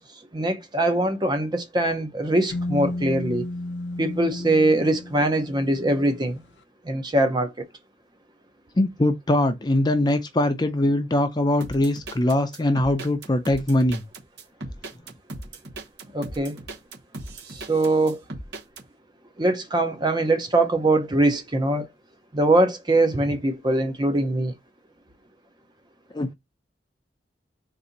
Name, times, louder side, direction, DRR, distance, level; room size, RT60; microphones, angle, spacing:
voice 1, 0.3-3.5 4.0-6.4 6.8-7.6 16.1-16.6 17.5-18.2 19.4-21.9 22.3-24.5, right 2 dB, 25° right, 0.7 m, -22 dB
sound 1, 2.5-6.3, left 1 dB, 75° left, 0.6 m, -33 dB
voice 2, 8.8-14.0 26.1-26.3, left 1 dB, 25° left, 0.5 m, -22 dB
sound 2, 11.6-18.8, right 2 dB, 75° right, 1.1 m, -38 dB
4.1 x 2.6 x 3.9 m
head